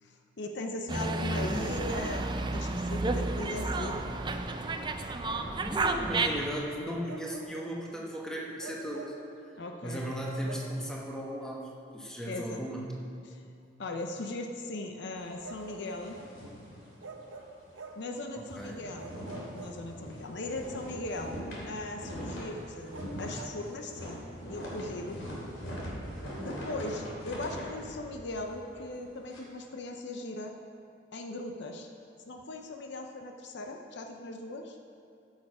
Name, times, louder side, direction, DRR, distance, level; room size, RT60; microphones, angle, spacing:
voice 1, 0.0-4.0 9.6-10.1 12.3-12.6 13.2-13.4 13.8-16.2 18.0-21.4 21.7-24.2 24.5-25.2 26.4-30.5 31.1-31.9 32.3-34.8, left 2 dB, 60° left, 4 dB, 0.6 m, -39 dB
Dog, 0.9-6.5, right 2 dB, 25° right, 0.4 m, -31 dB
voice 2, 5.6-9.1 9.5-12.9 18.3-18.9, equal, 5° left, -3 dB, 1.2 m, -37 dB
Bark, 7.0-7.8 8.6-9.3 10.4-10.8 12.4-12.6 15.4-16.4 17.0-18.1 19.0-20.2 22.9-23.6, right 3 dB, 80° right, 0.8 m, -46 dB
sound 1, 15.1-17.4 17.7-17.9 18.2-29.4, equal, 85° left, 2.8 m, -42 dB
13.0 x 6.4 x 4.9 m, 2.5 s
head